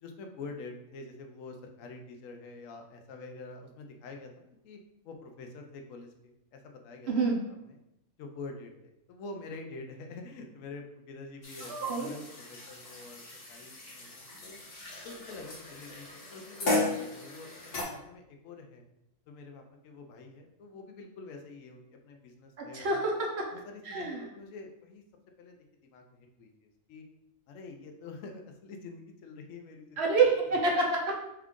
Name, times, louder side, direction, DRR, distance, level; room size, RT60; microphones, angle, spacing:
voice 1, 0.0-4.8 5.0-7.1 7.7-7.8 8.2-14.6 15.0-18.8 19.3-23.0 23.7-25.0 25.4-25.6 25.9-27.0 27.5-30.0 30.5-30.6, left 3 dB, 65° left, 4 dB, 0.9 m, -46 dB
voice 2, 7.1-7.4 11.7-12.1 22.6-23.5 23.8-24.2 30.0-31.2, right 3 dB, 60° right, 0 dB, 0.7 m, -27 dB
sound 1, 11.4-17.8, left 2 dB, 40° left, 1.1 m, -36 dB
4.4 x 2.4 x 3.6 m, 0.84 s
omnidirectional pair, 1.7 m